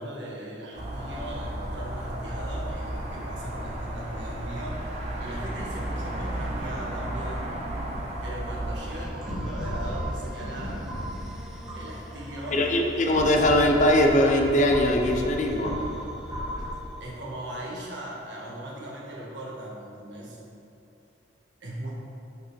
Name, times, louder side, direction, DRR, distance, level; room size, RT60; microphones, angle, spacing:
voice 1, 0.0-4.8 5.2-7.6 8.2-10.9 11.7-12.6 17.0-20.4 21.6-21.9, right 1 dB, 75° right, -4 dB, 1.3 m, -38 dB
sound 1, 0.7-9.0, right 1 dB, 35° right, 0.8 m, -33 dB
sound 2, 8.7-18.2, equal, 5° right, 0.6 m, -44 dB
sound 3, 9.1-12.2 12.8-16.7, equal, 20° right, 1.2 m, -35 dB
voice 2, 12.5-15.7, left 1 dB, 40° left, 2 dB, 0.5 m, -21 dB
6.4 x 5.7 x 3.2 m, 2.7 s
head